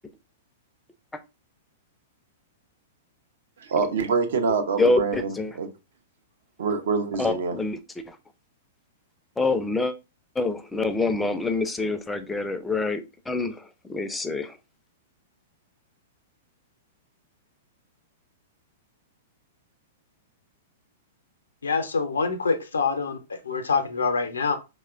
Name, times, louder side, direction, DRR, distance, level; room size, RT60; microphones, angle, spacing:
voice 1, 3.6-5.7 6.6-7.5, right 5 dB, 70° right, 0.5 m, -25 dB
voice 2, 4.8-5.5 7.2-7.8 8.1-8.2 9.4-9.9 10.4-14.6, left 3 dB, 10° left, 0.4 m, -26 dB
voice 3, 21.6-24.6, left 4 dB, 85° left, 0.5 m, -25 dB
2.9 x 2.1 x 2.4 m
hypercardioid pair, 110°, 0 cm